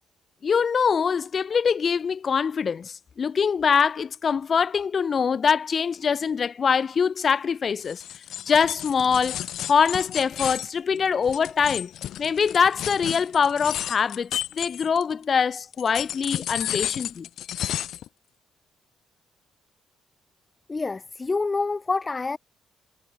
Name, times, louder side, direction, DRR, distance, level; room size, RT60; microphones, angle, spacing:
voice 1, 0.4-8.0 8.5-9.4 9.7-11.9 12.2-17.3, left 6 dB, 45° left, 1.1 m, -23 dB
sound 1, 7.8-15.2 15.7-18.1, left 11 dB, 75° left, 0.9 m, -32 dB
voice 2, 20.7-22.4, left 3 dB, 25° left, 2.1 m, -27 dB
cardioid pair, 90°, 0 cm